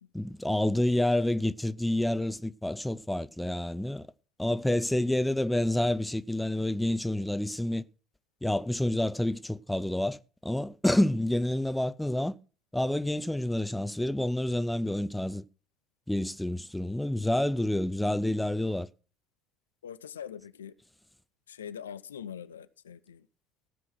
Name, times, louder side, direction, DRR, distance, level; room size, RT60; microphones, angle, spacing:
voice 1, 0.1-4.1 4.4-7.8 8.4-10.2 10.4-12.4 12.7-15.4 16.1-18.9, left 1 dB, 5° left, 0.6 m, -28 dB
voice 2, 19.8-20.7 21.5-23.3, left 8 dB, 80° left, 0.5 m, -43 dB
15.5 x 6.2 x 6.2 m
figure-of-eight pair, 50°, 0 cm